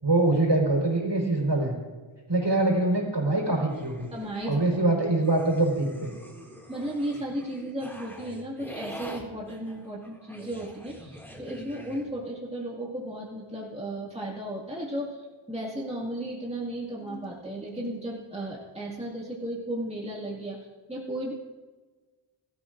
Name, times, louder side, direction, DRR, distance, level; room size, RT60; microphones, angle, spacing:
voice 1, 0.0-1.8 2.3-4.1 4.4-6.1, right 2 dB, 55° right, -1 dB, 4.2 m, -24 dB
sound 1, 3.7-4.7 5.2-12.0, equal, 5° left, 2.3 m, -45 dB
voice 2, 4.1-4.6 6.7-20.6 20.9-21.3, right 1 dB, 10° right, -5 dB, 2.1 m, -35 dB
sound 2, 14.7-15.3 16.8-18.8, left 2 dB, 70° left, 2.5 m, -48 dB
21.5 x 13.0 x 2.6 m, 1.3 s
wide cardioid pair, 60°, 49 cm